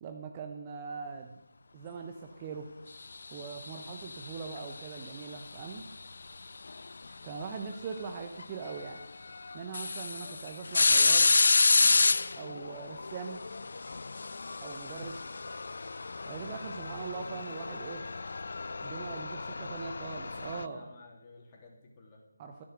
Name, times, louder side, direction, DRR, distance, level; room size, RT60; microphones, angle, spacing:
voice 1, 0.0-1.4 1.7-2.7 3.3-5.8 7.2-9.0 9.5-11.3 12.4-13.4 14.6-15.3 16.3-18.0 18.8-20.8 22.4-22.6, right 5 dB, 20° right, 4 dB, 1.0 m, -41 dB
sound 1, 3.4-4.9 6.7-6.8 8.4-8.5 9.0-9.1 9.5-20.7, left 3 dB, 50° left, 0.5 m, -29 dB
voice 2, 10.2-10.5 19.3-19.8 20.3-22.2, left 2 dB, 20° left, -1 dB, 3.1 m, -53 dB
13.5 x 10.5 x 7.9 m, 0.89 s
figure-of-eight pair, 155°, 0 cm